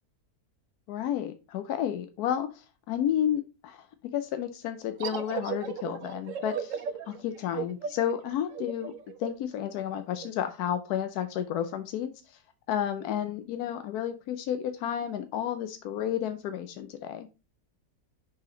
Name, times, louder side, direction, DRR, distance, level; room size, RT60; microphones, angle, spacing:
voice 1, 0.9-3.9 4.1-8.9 9.2-12.4 12.7-17.3, left 10 dB, 90° left, 9 dB, 1.1 m, -31 dB
sound 1, 5.0-10.3, right 8 dB, 65° right, 1.0 m, -37 dB
5.6 x 5.0 x 3.7 m, 0.29 s
omnidirectional pair, 1.6 m